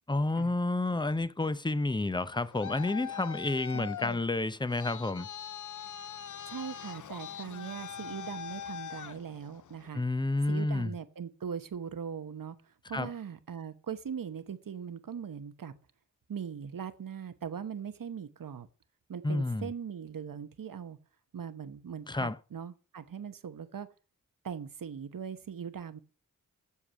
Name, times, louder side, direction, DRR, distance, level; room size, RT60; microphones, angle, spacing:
voice 1, 0.1-5.3 9.9-10.9 12.9-13.1 19.2-19.7 22.1-22.4, left 2 dB, 15° left, 0.6 m, -30 dB
Traffic noise roadway noise, 2.2-9.9, left 8 dB, 65° left, 0.5 m, -42 dB
voice 2, 3.7-4.2 6.5-10.0 10.5-15.7 16.3-18.7 19.1-21.0 21.3-23.9 24.4-26.0, right 7 dB, 80° right, 1.0 m, -40 dB
8.3 x 7.3 x 6.1 m
wide cardioid pair, 65°, 33 cm